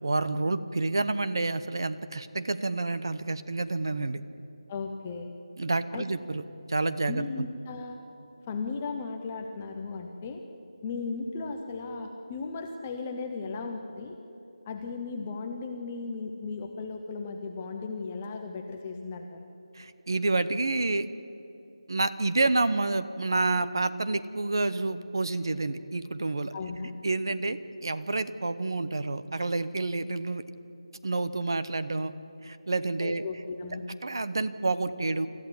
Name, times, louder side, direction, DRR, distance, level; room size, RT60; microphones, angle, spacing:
voice 1, 0.0-4.2 5.6-6.4 6.7-7.4 19.7-21.1 21.9-26.5 27.0-30.4 31.0-32.1 32.4-33.2 34.0-35.3, right 3 dB, 40° right, 12 dB, 0.8 m, -29 dB
voice 2, 4.7-5.4 5.9-6.0 7.1-8.0 8.5-10.4 10.8-14.2 14.7-19.5 26.5-26.9 33.0-33.8, left 4 dB, 10° left, 4 dB, 0.5 m, -36 dB
25.5 x 14.5 x 9.6 m, 2.8 s
figure-of-eight pair, 180°, 3 cm